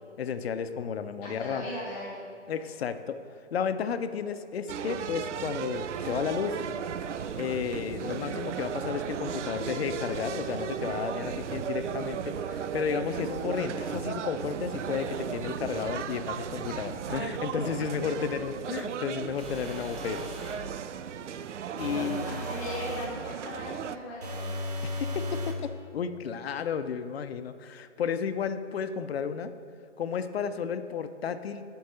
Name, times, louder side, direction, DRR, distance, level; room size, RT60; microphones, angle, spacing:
voice 1, 0.2-1.7 2.5-3.2 3.5-6.6 7.3-20.3 21.8-22.4 24.8-29.5 30.0-31.6, left 7 dB, 55° left, 10 dB, 0.5 m, -33 dB
voice 2, 1.2-2.2 17.8-18.4 21.7-24.6, left 1 dB, 5° left, -9 dB, 0.6 m, -39 dB
sound 1, 4.7-24.0, right 8 dB, 70° right, 0.5 m, -35 dB
sound 2, 19.4-20.7 21.8-23.2 24.2-25.6, left 1 dB, 30° right, 0.8 m, -36 dB
7.9 x 4.7 x 6.6 m, 2.5 s
hypercardioid pair, 160°, 37 cm